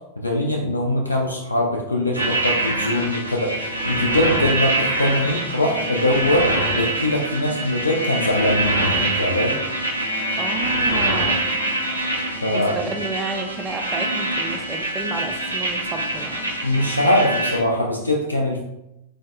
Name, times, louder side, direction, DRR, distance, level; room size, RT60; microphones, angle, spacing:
voice 1, 0.2-9.5 12.4-12.8 16.6-18.6, left 1 dB, 80° left, 0 dB, 0.3 m, -22 dB
sound 1, 2.1-17.6, right 1 dB, 85° right, 0.4 m, -24 dB
voice 2, 10.4-11.5 12.5-16.5, right 3 dB, 15° right, 3 dB, 0.3 m, -32 dB
4.0 x 2.0 x 2.5 m, 0.89 s
figure-of-eight pair, 90°, 0 cm